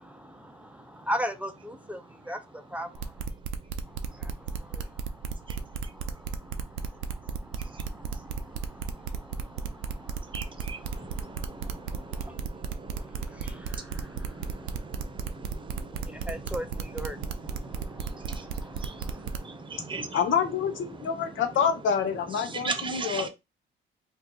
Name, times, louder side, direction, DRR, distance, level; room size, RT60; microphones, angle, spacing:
voice 1, 1.1-2.0 2.3-2.4 2.7-2.9 4.2-4.3 4.7-4.8 7.7-8.0 9.7-9.8 11.0-11.1 12.2-12.3 13.4-13.8 16.1-17.2 18.8-18.9, equal, 5° right, 0.4 m, -34 dB
sound 1, 3.0-19.4, right 7 dB, 90° right, 0.5 m, -34 dB
voice 2, 8.1-9.4 9.7-20.2 21.0-21.4 22.4-23.3, right 4 dB, 25° right, 0.8 m, -41 dB
voice 3, 20.1-23.3, left 7 dB, 75° left, 0.8 m, -27 dB
2.8 x 2.4 x 3.7 m
cardioid pair, 90°, 20 cm